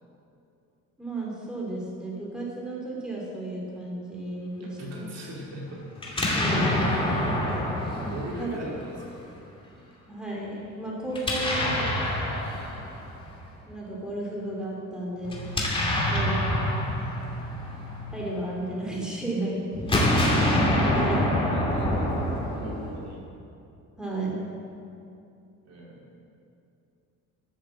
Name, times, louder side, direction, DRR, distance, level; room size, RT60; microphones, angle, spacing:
voice 1, 1.0-5.1 6.3-7.1 8.0-8.6 10.1-11.8 13.7-15.5 16.1-16.6 18.1-20.2 20.9-21.2 24.0-24.6, right 2 dB, ahead, -4 dB, 2.9 m, -34 dB
voice 2, 4.6-6.6 6.9-7.1 8.0-9.2 11.4-12.5 16.0-16.3 20.8-22.2 22.6-23.2 25.6-26.4, equal, 55° right, -3 dB, 2.8 m, -40 dB
Explosion, 6.0-9.0 11.1-13.3 15.2-18.7 19.7-23.1, left 1 dB, 15° left, 2.5 m, -26 dB
12.5 x 7.5 x 7.4 m, 2.6 s
cardioid pair, 130°, 32 cm